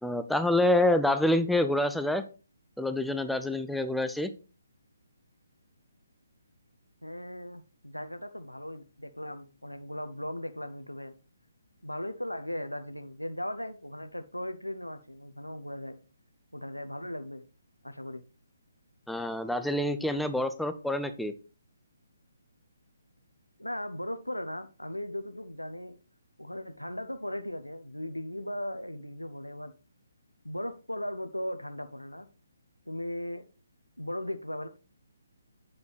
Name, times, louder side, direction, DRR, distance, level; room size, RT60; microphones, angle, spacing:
voice 1, 0.0-2.2 2.8-4.3 19.1-21.3, left 1 dB, ahead, 0.4 m, -27 dB
voice 2, 7.0-11.1 11.8-16.0 16.5-17.4 17.8-18.2 23.6-26.0 26.4-29.7 30.4-32.3 32.9-33.4 34.0-34.7, left 1 dB, 90° left, 0.7 m, -37 dB
8.0 x 6.9 x 3.3 m
figure-of-eight pair, 140°, 0 cm